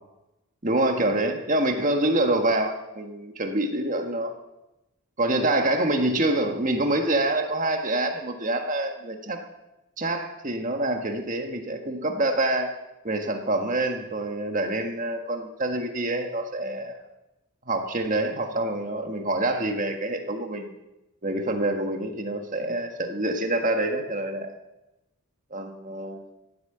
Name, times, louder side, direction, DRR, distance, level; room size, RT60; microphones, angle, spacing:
voice 1, 0.6-4.3 5.2-9.4 10.0-12.7 13.0-17.0 17.7-20.7 21.2-24.5 25.5-26.2, right 1 dB, 35° right, 4 dB, 1.6 m, -26 dB
15.5 x 8.6 x 8.0 m, 0.97 s
head